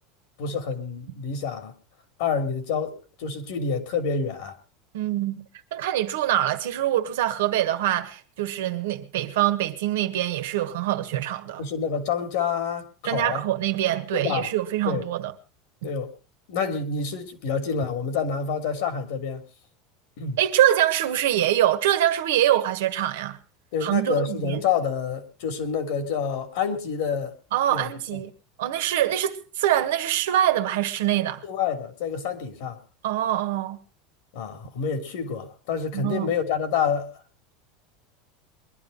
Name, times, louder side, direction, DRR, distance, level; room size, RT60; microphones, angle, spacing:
voice 1, 0.4-1.7 2.2-4.6 11.6-13.4 14.1-14.5 14.8-15.0 15.8-16.1 16.5-19.4 20.2-20.4 23.7-27.3 27.7-28.2 31.4-32.8 34.3-37.1, left 6 dB, 70° left, 3.0 m, -28 dB
voice 2, 4.9-5.4 5.7-11.6 13.0-15.3 15.8-15.9 20.4-23.4 23.8-24.6 27.5-28.3 28.6-31.4 33.0-33.8 35.9-36.3, right 12 dB, 90° right, 1.6 m, -24 dB
22.5 x 11.5 x 4.0 m
supercardioid pair, 135°, 0 cm